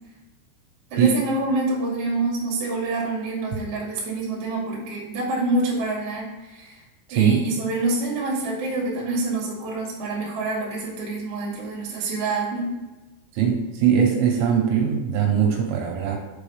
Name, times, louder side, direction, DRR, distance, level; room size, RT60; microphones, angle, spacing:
voice 1, 0.9-6.8 7.1-12.7, right 2 dB, 45° right, -4 dB, 2.0 m, -27 dB
voice 2, 7.1-7.5 13.3-16.2, right 7 dB, 80° right, 0 dB, 3.4 m, -20 dB
7.3 x 6.0 x 3.4 m, 1.1 s
omnidirectional pair, 5.8 m